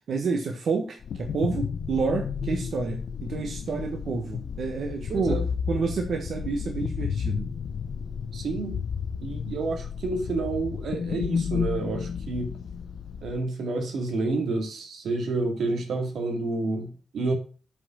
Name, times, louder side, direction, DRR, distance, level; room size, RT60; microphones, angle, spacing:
voice 1, 0.1-7.5, right 4 dB, 60° right, 2 dB, 1.4 m, -29 dB
sound 1, 1.0-13.4, left 7 dB, 70° left, 0.8 m, -32 dB
voice 2, 5.1-5.4 8.3-8.8 9.2-12.5 13.2-17.3, right 3 dB, 80° right, 4 dB, 2.4 m, -29 dB
8.4 x 5.3 x 6.2 m, 0.36 s
wide cardioid pair, 175°, 0 cm